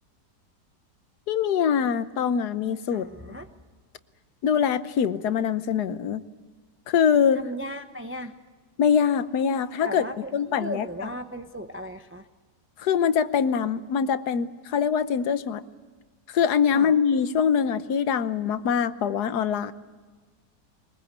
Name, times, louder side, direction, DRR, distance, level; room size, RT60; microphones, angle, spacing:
voice 1, 1.3-3.1 4.4-6.2 6.9-7.4 8.8-10.0 10.3-10.9 12.8-15.6 16.3-19.7, left 7 dB, 70° left, 12 dB, 1.4 m, -23 dB
voice 2, 2.9-3.5 7.3-8.3 9.8-12.3 16.7-16.9, equal, 15° right, 6 dB, 0.4 m, -36 dB
22.5 x 21.0 x 8.1 m, 1.4 s
omnidirectional pair, 1.8 m